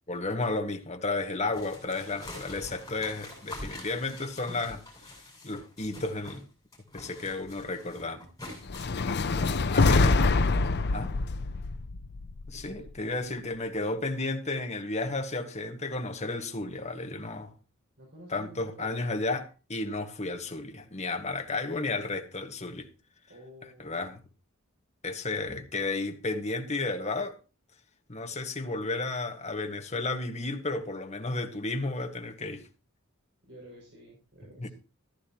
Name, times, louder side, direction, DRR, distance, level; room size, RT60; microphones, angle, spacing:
voice 1, 0.1-4.8 5.4-6.4 6.9-8.3 9.7-10.1 10.9-11.1 12.5-17.5 18.3-22.9 23.8-24.2 25.0-27.4 28.1-32.6 34.6-34.7, left 3 dB, 30° left, 1.5 m, -33 dB
sound 1, 1.5-6.4 6.7-9.0, left 2 dB, 15° left, 7.6 m, -45 dB
sound 2, 8.7-12.9, left 3 dB, 50° left, 0.7 m, -25 dB
voice 2, 10.5-10.9 12.5-12.9 18.0-19.1 23.3-24.1 33.5-34.7, equal, 55° right, 6.2 m, -51 dB
15.0 x 12.5 x 3.0 m
head